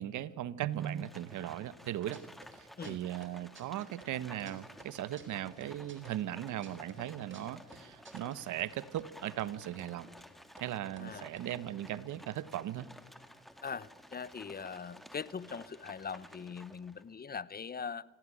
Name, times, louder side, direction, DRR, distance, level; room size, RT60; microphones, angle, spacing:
voice 1, 0.0-2.2 2.5-10.1 10.6-12.9, right 12 dB, 80° right, 17 dB, 1.1 m, -38 dB
Livestock farm animals working animals, 0.7-17.1, equal, ahead, 2.1 m, -54 dB
sound 1, 1.8-2.6 2.8-4.5 4.8-8.7 9.0-9.1 9.3-9.9 10.2-10.3 10.6-10.7 11.0-12.6 12.9-13.0 13.2-13.5, right 4 dB, 40° right, 4.4 m, -55 dB
voice 2, 13.6-18.0, left 6 dB, 30° left, 20 dB, 0.8 m, -41 dB
26.0 x 17.0 x 10.0 m, 1.4 s
cardioid pair, 90°, 30 cm